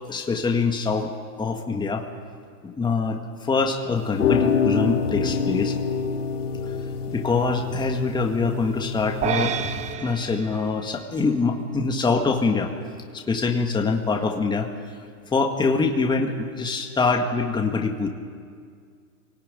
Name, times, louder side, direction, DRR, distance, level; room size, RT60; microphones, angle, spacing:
voice 1, 0.1-1.1 1.4-2.1 2.6-5.8 7.1-9.6 10.0-12.7 13.1-14.7 15.3-18.1, left 4 dB, 10° left, 3 dB, 1.7 m, -24 dB
sound 1, 4.0-9.9, left 6 dB, 75° left, 5.8 m, -26 dB
sound 2, 9.2-11.7, right 8 dB, 15° right, 0.8 m, -30 dB
25.5 x 18.5 x 8.9 m, 2.1 s
hypercardioid pair, 130°, 45 cm